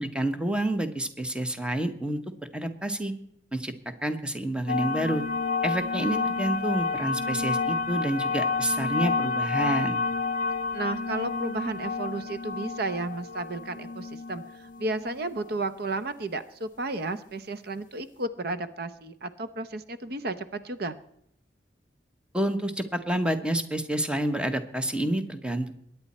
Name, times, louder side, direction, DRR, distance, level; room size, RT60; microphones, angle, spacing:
voice 1, 0.0-2.2 2.5-3.1 3.5-3.7 4.0-5.2 5.6-10.0 22.3-25.7, right 1 dB, 5° right, 8 dB, 1.0 m, -28 dB
sound 1, 4.7-15.5, left 4 dB, 50° left, 0.7 m, -30 dB
voice 2, 10.7-21.0, right 2 dB, 60° right, 11 dB, 0.8 m, -33 dB
22.0 x 9.5 x 4.3 m, 0.71 s
head